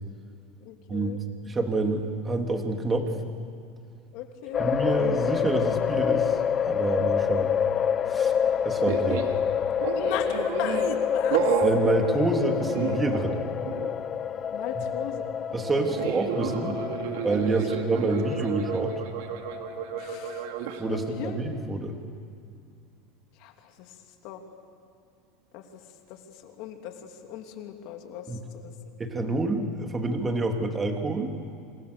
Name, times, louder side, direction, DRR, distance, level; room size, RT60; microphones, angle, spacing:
voice 1, 0.6-1.2 4.1-4.7 9.9-11.6 14.5-15.3 16.5-16.6 17.5-17.7 18.3-18.4 20.0-20.5 20.8-21.4 23.3-24.0 24.2-24.4 25.5-25.8 26.1-28.7, left 9 dB, 65° left, 4 dB, 3.1 m, -38 dB
voice 2, 1.4-3.1 4.6-7.5 8.1-8.3 8.6-9.3 11.6-13.5 15.5-16.8 17.2-18.9 20.8-22.0 28.3-28.4 29.0-31.3, right 2 dB, 20° right, 3 dB, 3.1 m, -27 dB
sound 1, 4.5-21.5, left 8 dB, 35° left, 0.6 m, -28 dB
sound 2, 8.9-9.4 9.8-11.0 11.3-11.8 12.5-13.4 13.6-13.9 16.0-20.8, right 9 dB, 75° right, 2.4 m, -31 dB
27.5 x 27.0 x 7.0 m, 2.4 s
supercardioid pair, 115°, 0 cm